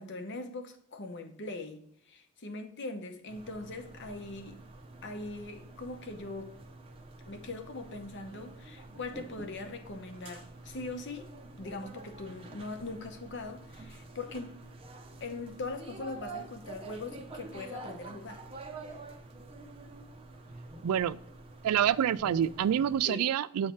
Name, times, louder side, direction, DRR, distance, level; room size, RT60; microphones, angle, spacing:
voice 1, 0.0-4.6 5.0-6.5 7.3-11.3 11.6-14.6 15.2-18.4 23.0-23.2, left 2 dB, 55° left, 0.8 m, -41 dB
sound 1, 3.3-23.1, right 2 dB, 25° right, 0.6 m, -48 dB
voice 2, 20.8-21.2 21.6-23.7, right 9 dB, 80° right, 0.3 m, -27 dB
8.1 x 3.2 x 4.3 m
head